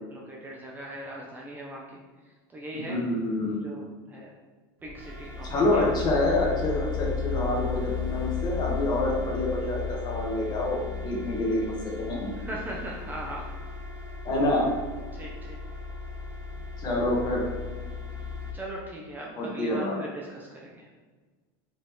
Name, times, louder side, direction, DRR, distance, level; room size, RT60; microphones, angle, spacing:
voice 1, 0.1-2.0 2.5-3.0 3.6-4.3 4.8-5.5 5.7-5.9 12.5-13.5 15.1-15.6 18.5-20.9, right 1 dB, 15° right, -3 dB, 0.5 m, -39 dB
voice 2, 2.7-3.7 5.4-12.4 14.2-14.7 16.8-17.5 19.4-20.0, left 2 dB, 35° left, -2 dB, 1.2 m, -27 dB
sound 1, 4.8-18.5, left 5 dB, 75° right, 1.4 m, -35 dB
5.2 x 2.8 x 3.5 m, 1.4 s
supercardioid pair, 140°, 13 cm